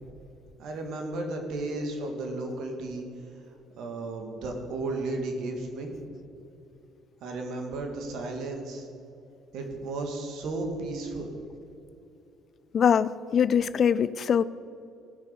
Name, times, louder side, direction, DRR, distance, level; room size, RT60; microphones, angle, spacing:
voice 1, 0.6-3.1 3.8-6.2 7.2-8.9 9.5-11.3, right 2 dB, 70° right, 3 dB, 1.9 m, -34 dB
voice 2, 12.7-14.4, left 7 dB, 50° left, 17 dB, 0.3 m, -23 dB
16.5 x 6.1 x 5.3 m, 2.8 s
supercardioid pair, 80°, 0 cm